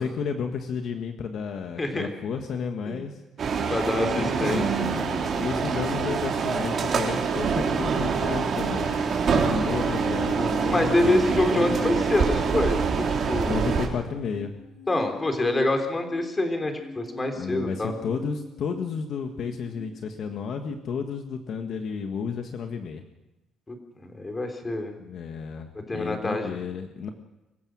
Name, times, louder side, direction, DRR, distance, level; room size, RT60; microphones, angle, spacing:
voice 1, 0.0-3.2 4.0-8.9 9.2-12.1 13.4-14.6 17.3-23.0 25.0-27.1, left 6 dB, 55° left, 6 dB, 1.6 m, -32 dB
voice 2, 1.8-2.1 2.9-3.0 3.7-4.8 10.6-13.6 14.9-17.9 23.7-23.8 24.1-24.9 25.9-26.6, left 2 dB, 20° left, 5 dB, 3.4 m, -26 dB
sound 1, 3.4-13.9, right 5 dB, 45° right, 3.9 m, -25 dB
sound 2, 14.0-19.8, left 3 dB, 40° left, 6.3 m, -45 dB
26.0 x 15.5 x 6.3 m, 1.0 s
cardioid pair, 145°, 0 cm